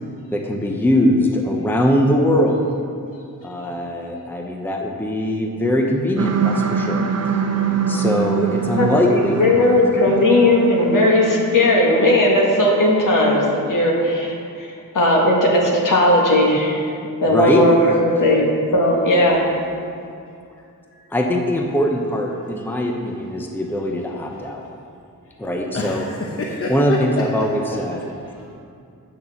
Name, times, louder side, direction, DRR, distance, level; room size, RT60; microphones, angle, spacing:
voice 1, 0.3-2.6 3.4-7.0 7.9-9.7 17.3-17.6 21.1-24.6 25.4-26.1 26.7-28.0, left 1 dB, 5° left, 1 dB, 0.8 m, -21 dB
voice 2, 3.1-3.7 20.9-21.0 25.7-27.8 28.2-28.6, left 1 dB, 40° left, -2 dB, 0.9 m, -28 dB
sound 1, 6.2-12.2, right 6 dB, 50° right, 0.7 m, -24 dB
voice 3, 8.8-14.3 14.6-19.4, left 1 dB, 65° left, -2 dB, 1.9 m, -17 dB
8.8 x 6.5 x 7.1 m, 2.4 s
wide cardioid pair, 150°, 34 cm